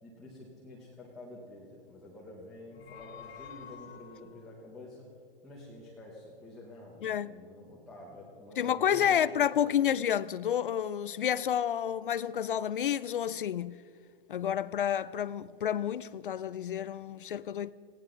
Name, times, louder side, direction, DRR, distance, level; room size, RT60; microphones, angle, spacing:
voice 1, 0.0-5.1 5.4-9.8, left 1 dB, ahead, 0.9 m, -49 dB
sound 1, 2.6-4.5, left 8 dB, 75° left, 2.6 m, -49 dB
voice 2, 7.0-7.3 8.6-13.8 14.3-17.7, left 9 dB, 55° left, 0.5 m, -30 dB
19.5 x 16.5 x 3.9 m
hypercardioid pair, 180°, 32 cm